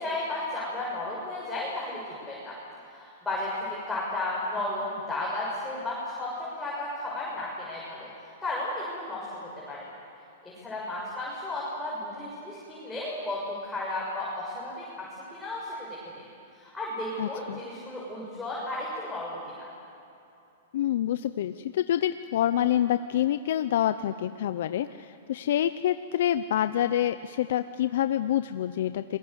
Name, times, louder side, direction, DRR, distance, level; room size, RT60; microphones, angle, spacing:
voice 1, 0.0-2.6 2.9-8.1 8.4-9.9 10.4-16.3 16.5-19.7, left 2 dB, 10° left, -6 dB, 6.8 m, -34 dB
voice 2, 17.2-17.6 20.7-29.2, left 11 dB, 65° left, 11 dB, 0.7 m, -27 dB
27.5 x 21.5 x 8.1 m, 2.8 s
hypercardioid pair, 135°, 0 cm